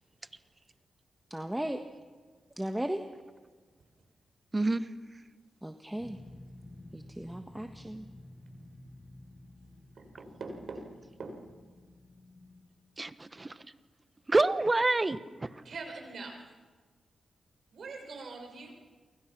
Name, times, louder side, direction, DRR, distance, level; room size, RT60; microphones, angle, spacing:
voice 1, 1.3-1.8 2.6-3.0 5.6-6.2 6.9-8.0, right 1 dB, 10° right, 6 dB, 1.4 m, -36 dB
voice 2, 4.5-4.9 13.0-13.6 14.3-15.6, right 2 dB, 25° right, 14 dB, 1.1 m, -28 dB
sound 1, 6.0-12.6, left 1 dB, 20° left, 6.3 m, -52 dB
voice 3, 10.0-10.9 11.2-11.4 15.6-16.4 17.7-18.8, right 3 dB, 65° right, 3 dB, 5.8 m, -42 dB
29.5 x 23.5 x 6.0 m, 1.4 s
cardioid pair, 55°, 0 cm